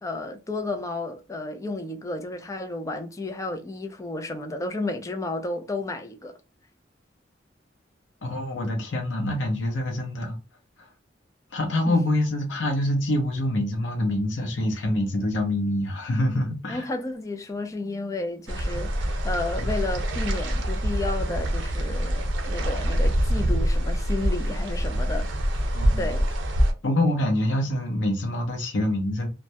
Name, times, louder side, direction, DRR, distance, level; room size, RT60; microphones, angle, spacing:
voice 1, 0.0-6.3 11.9-12.0 16.7-25.3 25.5-25.6 26.0-26.3, left 2 dB, 15° left, 0.4 m, -32 dB
voice 2, 8.2-10.4 10.8-10.9 11.5-16.9 19.6-19.7 25.7-26.1 26.8-29.3, left 1 dB, 80° left, 0.6 m, -26 dB
sound 1, 18.5-26.7, equal, 80° right, 0.6 m, -25 dB
2.2 x 2.1 x 2.7 m
head